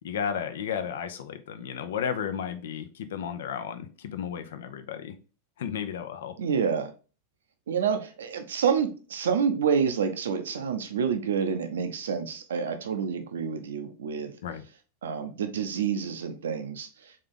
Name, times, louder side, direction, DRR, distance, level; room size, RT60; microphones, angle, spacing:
voice 1, 0.0-5.2 5.6-6.3 14.4-14.6, left 8 dB, 60° left, 0.6 m, -33 dB
voice 2, 6.4-6.9 7.7-14.3 15.0-16.9, right 6 dB, 65° right, 0.6 m, -28 dB
3.8 x 3.3 x 3.7 m
figure-of-eight pair, 90°, 0 cm